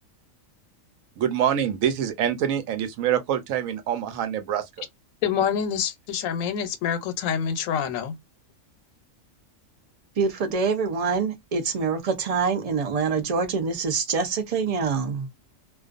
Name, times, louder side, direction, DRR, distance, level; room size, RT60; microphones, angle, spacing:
voice 1, 1.2-4.9, right 9 dB, 90° right, 1.0 m, -25 dB
voice 2, 5.2-8.2, left 7 dB, 85° left, 1.0 m, -26 dB
voice 3, 10.2-15.3, right 5 dB, 60° right, 0.4 m, -25 dB
2.4 x 2.3 x 2.4 m
omnidirectional pair, 1.4 m